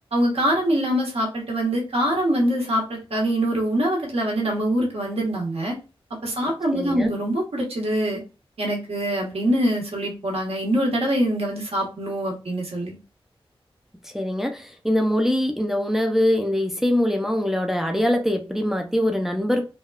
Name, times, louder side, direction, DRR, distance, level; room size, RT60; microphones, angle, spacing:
voice 1, 0.1-5.7 6.2-8.2 8.6-13.0, right 1 dB, 90° right, 1.2 m, -24 dB
voice 2, 6.7-7.1 14.1-19.7, left 1 dB, 5° right, 0.4 m, -23 dB
3.4 x 2.2 x 2.2 m
wide cardioid pair, 95°, 10 cm